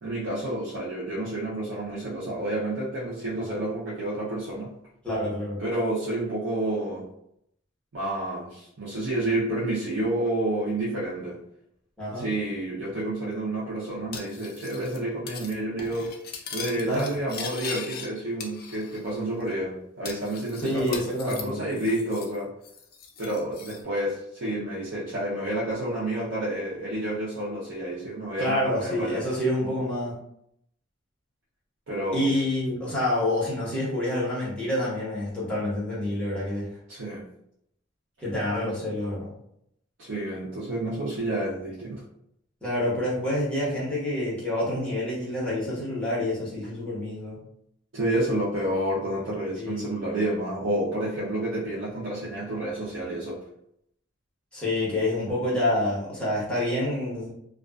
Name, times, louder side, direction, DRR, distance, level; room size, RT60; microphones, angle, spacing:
voice 1, 0.0-4.7 5.6-7.1 7.9-11.4 12.1-16.1 16.5-22.5 23.2-29.2 31.9-32.3 36.9-37.2 40.0-42.0 47.9-53.4, right 1 dB, 85° right, -8 dB, 0.7 m, -29 dB
voice 2, 5.0-5.6 12.0-12.2 16.8-17.1 20.6-21.6 28.4-30.2 32.1-36.7 38.2-39.3 42.6-47.4 49.6-49.9 54.5-57.3, left 1 dB, 5° left, -8 dB, 1.1 m, -27 dB
Cutlery silverware, 14.1-15.0 15.3-15.5 15.8-18.1 18.4-19.1 19.4-19.5 20.1-22.4 22.6-23.8, left 5 dB, 55° left, 0.4 m, -39 dB
2.4 x 2.3 x 2.3 m, 0.74 s
head